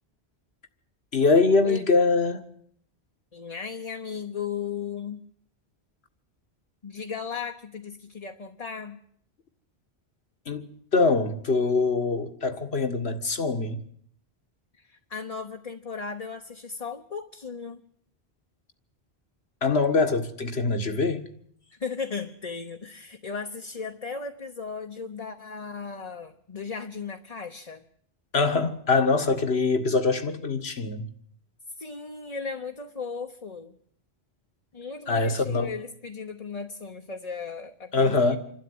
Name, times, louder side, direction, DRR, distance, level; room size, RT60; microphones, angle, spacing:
voice 1, 1.1-2.4 10.5-13.8 19.6-21.3 28.3-31.0 35.1-35.7 37.9-38.4, left 3 dB, 70° left, 2.0 m, -23 dB
voice 2, 3.3-5.2 6.8-9.0 14.8-17.8 21.8-27.9 31.8-33.7 34.7-38.4, left 5 dB, 35° left, 1.1 m, -36 dB
27.0 x 12.0 x 9.6 m
omnidirectional pair, 1.1 m